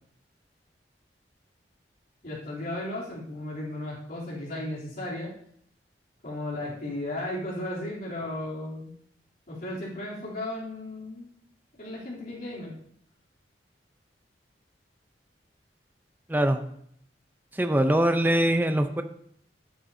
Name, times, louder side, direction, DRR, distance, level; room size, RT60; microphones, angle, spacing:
voice 1, 2.2-5.3 6.2-8.9 9.5-11.3 11.8-12.7, left 1 dB, 55° left, -7 dB, 3.3 m, -35 dB
voice 2, 16.3-16.6 17.5-19.0, right 1 dB, 10° right, 7 dB, 0.6 m, -23 dB
13.5 x 8.8 x 2.7 m, 0.67 s
head